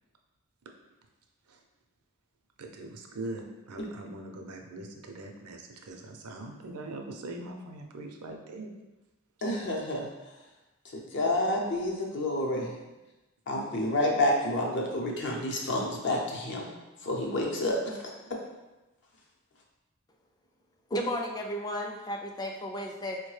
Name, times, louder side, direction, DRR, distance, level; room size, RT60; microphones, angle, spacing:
voice 1, 2.6-8.7, right 2 dB, 80° right, 3 dB, 0.5 m, -41 dB
voice 2, 9.4-10.1 10.9-12.7 13.5-16.7 17.0-18.1, left 1 dB, 55° left, -1 dB, 0.7 m, -29 dB
voice 3, 20.9-23.2, equal, 20° left, 1 dB, 0.3 m, -33 dB
4.6 x 2.1 x 3.2 m, 1.1 s
head